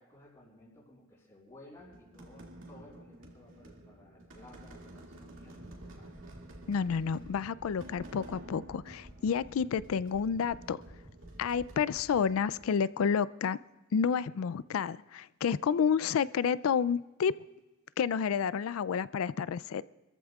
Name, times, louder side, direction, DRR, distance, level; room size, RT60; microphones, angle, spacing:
voice 1, 0.0-6.1, left 1 dB, 25° left, -9 dB, 3.9 m, -56 dB
sound 1, 1.8-12.7, right 1 dB, 70° right, 2.2 m, -51 dB
sound 2, 5.6-12.3, right 1 dB, 45° right, 2.8 m, -53 dB
voice 2, 6.7-10.8 11.4-13.6 13.9-17.3 18.0-19.8, left 6 dB, 80° left, 19 dB, 0.4 m, -30 dB
27.5 x 14.5 x 2.4 m, 1.1 s
head